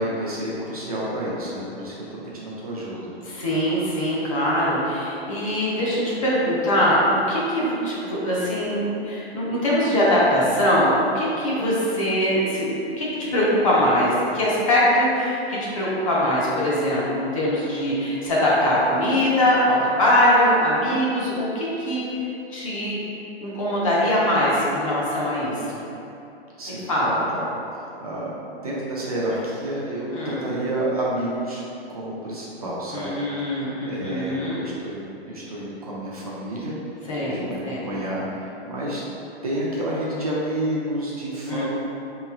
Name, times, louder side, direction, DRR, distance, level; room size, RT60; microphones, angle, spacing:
voice 1, 0.0-3.2 26.6-27.5 28.0-28.3 28.6-31.6 31.9-36.7 37.2-39.0 39.4-41.6, right 1 dB, 35° right, -6 dB, 0.4 m, -30 dB
voice 2, 3.2-23.0 23.4-25.8 26.7-27.3 30.1-30.5 32.9-34.6 37.1-37.9 41.5-41.6, equal, 30° left, -7 dB, 0.5 m, -22 dB
3.8 x 3.0 x 2.3 m, 2.8 s
hypercardioid pair, 175°, 32 cm